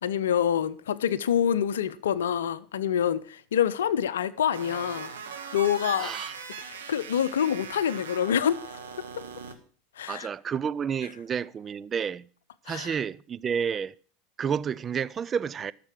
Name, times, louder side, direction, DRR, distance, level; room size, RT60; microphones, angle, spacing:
voice 1, 0.0-5.1 5.5-6.1 6.7-8.6 9.2-9.3 10.0-10.3 12.7-12.9, left 9 dB, 75° left, 0.7 m, -26 dB
sound 1, 4.5-9.5, right 6 dB, 80° right, 1.5 m, -40 dB
voice 2, 6.0-6.4 10.1-12.3 12.7-13.9 14.4-15.7, right 7 dB, 30° right, 0.5 m, -30 dB
13.0 x 6.8 x 7.4 m
figure-of-eight pair, 80°, 0 cm